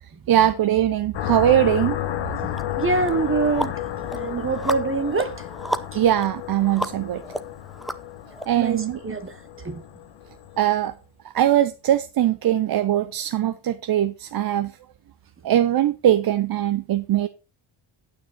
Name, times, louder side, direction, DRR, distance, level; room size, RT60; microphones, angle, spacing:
voice 1, 0.3-2.0 5.9-7.2 8.5-9.0 10.6-10.9 11.3-14.7 15.4-17.3, right 11 dB, 45° right, 0.7 m, -21 dB
sound 1, 1.1-10.7, left 11 dB, 65° left, 1.4 m, -32 dB
voice 2, 2.4-3.7 4.1-5.3 8.6-9.3 9.6-9.8, right 4 dB, 25° right, 1.0 m, -25 dB
sound 2, 2.5-2.6 3.1-8.5, equal, ahead, 0.6 m, -33 dB
9.7 x 8.9 x 4.4 m
cardioid pair, 145°, 48 cm